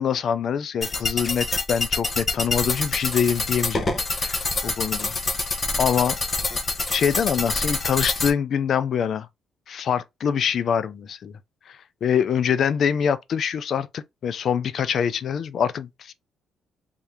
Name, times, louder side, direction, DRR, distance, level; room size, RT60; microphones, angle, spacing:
voice 1, 0.0-3.9 4.1-5.2 5.8-6.2 6.9-9.3 9.7-11.3 11.7-16.1, left 7 dB, 60° left, 0.4 m, -24 dB
sound 1, 0.8-8.3, left 3 dB, 30° left, 0.9 m, -26 dB
3.6 x 2.7 x 3.4 m
cardioid pair, 90°, 0 cm